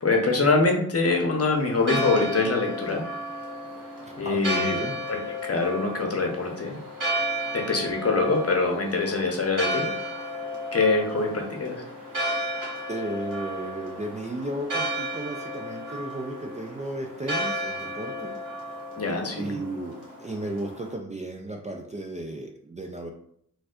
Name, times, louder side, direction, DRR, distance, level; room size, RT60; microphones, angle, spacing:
voice 1, 0.0-3.1 4.2-4.7 5.1-6.8 7.5-9.9 10.7-11.8 19.0-19.6, left 3 dB, 40° left, 2 dB, 0.8 m, -24 dB
Church bell, 1.5-20.9, equal, 55° right, 1.4 m, -33 dB
voice 2, 4.0-5.0 12.9-18.4 19.4-23.1, right 1 dB, 20° right, 2 dB, 0.4 m, -34 dB
4.1 x 2.3 x 2.4 m, 0.69 s
cardioid pair, 45°, 37 cm